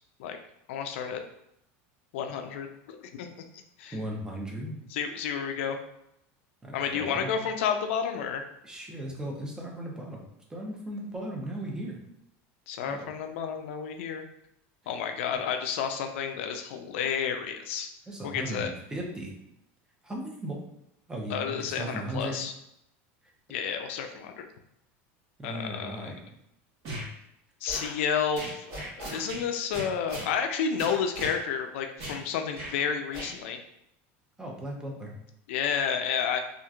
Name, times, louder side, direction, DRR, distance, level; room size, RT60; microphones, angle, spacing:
voice 1, 0.7-1.2 2.1-3.3 3.8-3.9 4.9-5.8 6.7-8.4 12.7-14.2 14.9-17.9 18.2-18.7 21.3-22.5 23.5-24.5 25.4-26.1 27.6-33.6 35.5-36.4, left 7 dB, 85° left, 5 dB, 0.3 m, -31 dB
voice 2, 3.9-4.8 6.6-7.4 8.6-10.2 10.5-12.0 12.8-13.1 15.3-15.4 18.1-19.3 20.0-20.6 21.1-22.4 23.2-23.3 25.4-26.3 34.4-35.1, right 1 dB, 10° right, -1 dB, 0.6 m, -37 dB
sound 1, 26.8-27.1 27.7-27.9 28.4-29.4 29.7-30.3 30.8-31.4 32.0-32.2 32.5-32.7 33.1-33.3, right 1 dB, 55° right, 1.2 m, -37 dB
2.9 x 2.4 x 2.3 m, 0.80 s
supercardioid pair, 135°, 7 cm